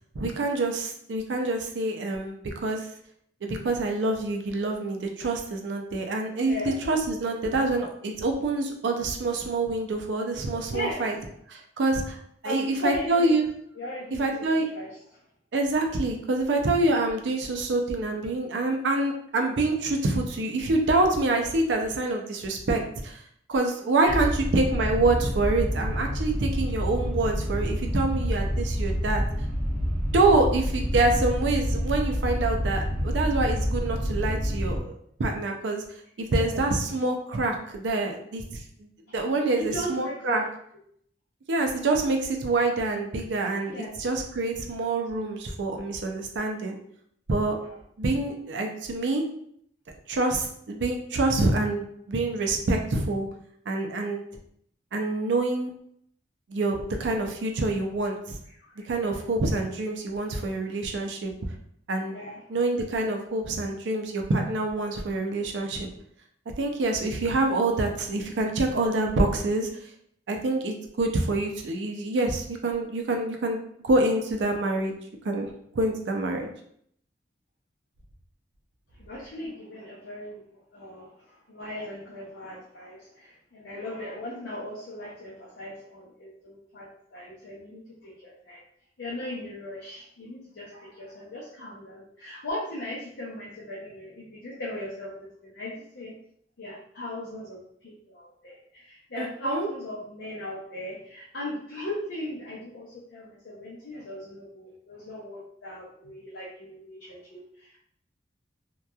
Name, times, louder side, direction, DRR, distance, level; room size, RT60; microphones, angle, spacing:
voice 1, 0.2-2.9 3.4-6.5 6.9-11.1 11.5-12.2 12.4-13.5 14.2-14.7 15.5-23.2 23.5-29.2 30.1-34.9 35.2-35.8 36.2-38.4 38.8-40.4 41.5-46.8 47.3-47.6 48.0-49.2 50.1-53.3 53.7-54.2 54.9-55.7 56.5-58.4 58.9-61.3 61.9-62.2 62.5-65.9 66.6-69.7 70.3-73.6 73.8-74.9 75.2-75.5 75.8-76.5 99.2-99.7, right 2 dB, 75° right, 3 dB, 0.4 m, -26 dB
voice 2, 6.4-6.8 10.7-11.0 12.4-13.4 13.8-15.2 24.0-24.2 36.3-36.6 39.5-40.5 43.7-43.9 47.6-47.8 58.8-58.9 62.1-62.4 79.0-88.6 89.0-95.1 95.4-96.1 96.6-107.8, left 1 dB, 75° left, -5 dB, 0.6 m, -38 dB
sound 1, 24.1-34.8, equal, 50° right, 1.0 m, -28 dB
2.8 x 2.2 x 2.2 m, 0.67 s
head